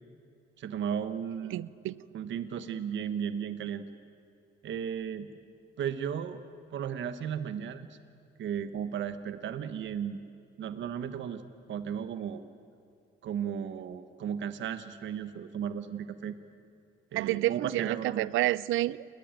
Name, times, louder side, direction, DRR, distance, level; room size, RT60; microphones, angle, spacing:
voice 1, 0.6-1.6 2.1-3.8 4.6-5.3 5.8-6.4 6.7-7.9 8.4-10.2 10.6-11.4 11.7-12.4 13.2-16.4 17.1-18.3, right 8 dB, 70° right, 11 dB, 1.3 m, -35 dB
voice 2, 1.5-2.0 17.1-19.1, right 16 dB, 90° right, 21 dB, 0.6 m, -29 dB
28.5 x 21.0 x 9.1 m, 2.4 s
cardioid pair, 90°, 20 cm